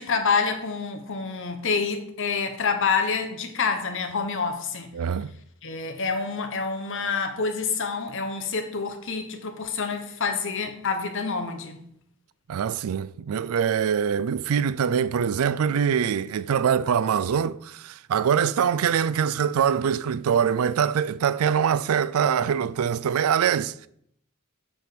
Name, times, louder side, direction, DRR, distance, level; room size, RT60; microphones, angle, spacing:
voice 1, 0.0-4.9 5.6-11.8, left 5 dB, 60° left, 1.2 m, -27 dB
voice 2, 4.9-5.3 12.5-23.9, right 7 dB, 75° right, 0.4 m, -24 dB
7.1 x 6.2 x 5.1 m
head